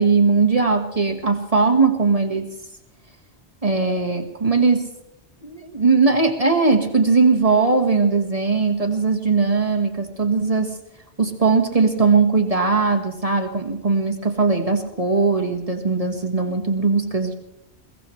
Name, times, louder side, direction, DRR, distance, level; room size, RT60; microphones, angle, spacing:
voice 1, 0.0-2.5 3.6-4.9 5.4-10.7 11.2-17.3, right 4 dB, 35° right, 4 dB, 1.5 m, -19 dB
22.5 x 16.5 x 3.2 m, 0.84 s
omnidirectional pair, 1.1 m